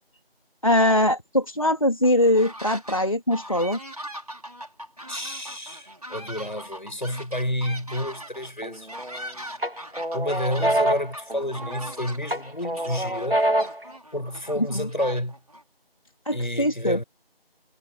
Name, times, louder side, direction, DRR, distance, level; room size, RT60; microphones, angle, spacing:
voice 1, 0.6-3.8 14.6-14.9 16.2-17.0, left 1 dB, 35° left, 3.3 m, -22 dB
sound 1, 2.0-3.0 3.3-15.6, right 1 dB, 40° right, 5.2 m, -40 dB
voice 2, 5.1-9.1 10.1-13.4 14.1-15.4 16.3-17.0, left 1 dB, 50° left, 7.5 m, -30 dB
sound 2, 8.6-9.2 9.6-11.9 12.3-13.9, right 1 dB, 65° right, 2.0 m, -26 dB
figure-of-eight pair, 175°, 30 cm